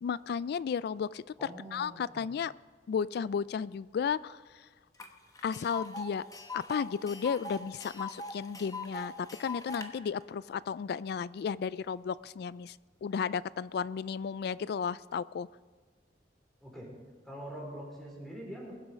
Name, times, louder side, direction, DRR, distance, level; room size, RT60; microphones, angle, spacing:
voice 1, 0.0-1.2 1.7-2.5 2.9-4.4 5.4-6.2 6.5-12.8 13.0-15.5, left 6 dB, 65° left, 20 dB, 0.3 m, -33 dB
voice 2, 1.4-2.3 16.6-16.9 17.2-18.7, right 1 dB, ahead, -3 dB, 4.2 m, -44 dB
Tick, 5.0-5.1 5.4-9.9, left 3 dB, 20° left, 1.1 m, -41 dB
21.0 x 8.0 x 5.2 m, 1.4 s
head